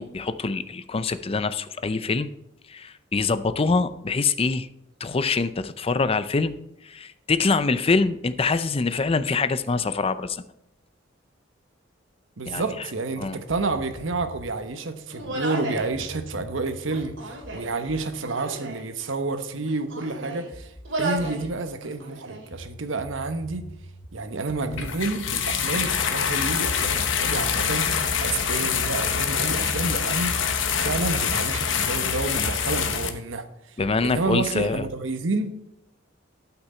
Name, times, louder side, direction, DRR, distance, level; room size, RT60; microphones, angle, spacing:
voice 1, 0.0-2.3 2.7-4.7 5.0-6.5 6.8-10.4 12.4-12.7 13.2-13.4 33.8-34.8, left 4 dB, 30° left, 0.5 m, -24 dB
voice 2, 12.4-23.7 24.1-27.9 28.2-30.4 30.8-33.5 34.0-35.5, right 3 dB, 90° right, 1.0 m, -29 dB
sound 1, 13.5-14.8 15.9-19.6 20.5-21.8 22.5-26.4, right 1 dB, 50° left, 1.4 m, -46 dB
Human voice, 15.1-15.9 16.8-17.7 18.2-18.9 19.5-20.5 20.8-21.4 21.8-22.5, right 2 dB, 75° right, 2.5 m, -33 dB
sound 2, 24.7-33.1, left 6 dB, 80° left, 1.0 m, -25 dB
12.0 x 5.9 x 4.4 m
head